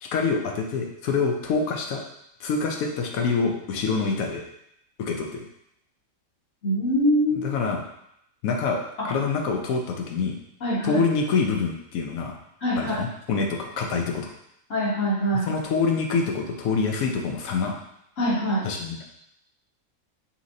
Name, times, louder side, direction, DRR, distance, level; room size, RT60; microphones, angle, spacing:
voice 1, 0.0-2.0 2.4-4.4 5.0-5.4 7.3-7.8 8.4-10.4 10.8-12.4 12.8-14.3 15.4-17.8 18.6-19.0, left 4 dB, 85° left, 2 dB, 1.1 m, -26 dB
voice 2, 6.6-7.5 10.6-11.0 12.6-12.9 14.7-15.5 18.2-18.7, equal, 65° left, -6 dB, 1.6 m, -23 dB
5.6 x 2.9 x 2.6 m, 0.77 s
omnidirectional pair, 1.4 m